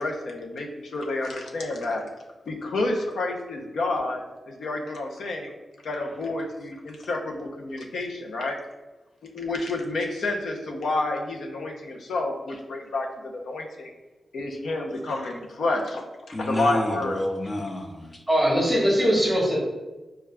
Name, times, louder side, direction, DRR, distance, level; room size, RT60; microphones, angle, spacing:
voice 1, 0.0-2.0 2.5-4.2 4.5-5.5 5.8-8.6 9.3-13.9 14.3-16.0 16.3-17.2, left 2 dB, 80° left, 1 dB, 0.6 m, -29 dB
voice 2, 16.3-18.2, left 1 dB, 25° left, 3 dB, 0.5 m, -29 dB
voice 3, 18.3-19.6, equal, ahead, -5 dB, 1.2 m, -21 dB
6.0 x 2.3 x 2.2 m, 1.2 s
wide cardioid pair, 130°, 0 cm